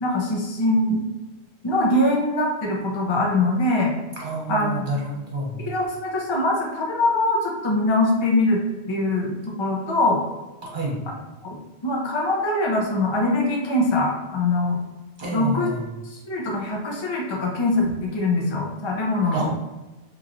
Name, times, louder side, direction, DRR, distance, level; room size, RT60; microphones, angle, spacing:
voice 1, 0.0-1.0 1.6-3.9 4.5-4.8 5.6-8.6 8.9-10.2 11.4-11.6 11.8-14.8 15.3-15.7 16.1-19.5, left 2 dB, 35° left, -1 dB, 0.5 m, -22 dB
voice 2, 4.2-5.7 10.6-11.0 15.2-15.8 19.3-19.5, right 2 dB, 50° right, -3 dB, 1.2 m, -28 dB
3.9 x 3.0 x 2.6 m, 1.1 s
omnidirectional pair, 1.1 m